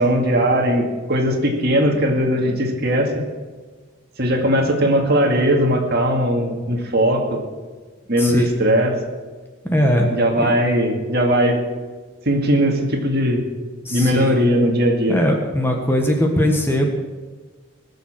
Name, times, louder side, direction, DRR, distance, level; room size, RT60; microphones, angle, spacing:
voice 1, 0.0-3.1 4.2-7.4 8.1-8.9 10.1-11.6 12.3-13.5 13.9-15.2, equal, 50° right, 2 dB, 2.1 m, -19 dB
voice 2, 9.6-10.1 10.4-10.5 13.8-14.4 15.1-16.9, equal, 10° left, 2 dB, 1.4 m, -20 dB
19.5 x 7.2 x 6.3 m, 1.4 s
head